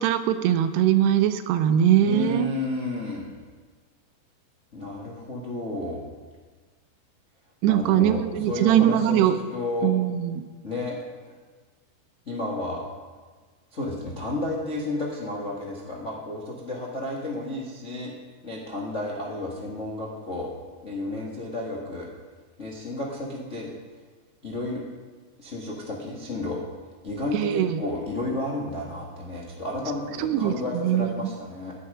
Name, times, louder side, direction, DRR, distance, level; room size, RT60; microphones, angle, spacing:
voice 1, 0.0-2.5 7.6-9.3 9.8-10.4 27.3-27.8 30.2-31.1, right 11 dB, 85° right, 10 dB, 2.8 m, -21 dB
voice 2, 2.0-3.3 4.7-6.0 7.6-9.2 9.5-9.9 10.6-11.0 12.2-12.8 13.7-18.1 18.4-20.5 20.8-22.1 22.6-23.7 24.4-24.8 25.4-26.6 27.0-31.7, left 2 dB, 60° left, -4 dB, 0.7 m, -32 dB
16.0 x 10.0 x 5.0 m, 1.4 s
omnidirectional pair, 4.9 m